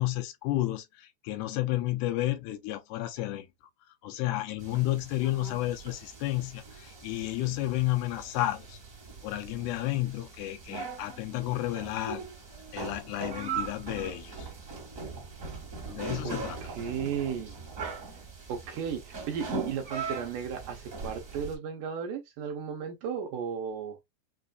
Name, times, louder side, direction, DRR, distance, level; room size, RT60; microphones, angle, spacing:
voice 1, 0.0-3.5 3.8-8.8 9.2-12.2 12.7-14.5 15.9-16.6, left 15 dB, 80° left, 2.7 m, -31 dB
sound 1, 4.6-21.5, right 4 dB, 45° right, 1.0 m, -40 dB
voice 2, 16.2-17.6 18.5-24.0, right 7 dB, 75° right, 1.9 m, -35 dB
6.2 x 2.5 x 2.3 m
omnidirectional pair, 4.7 m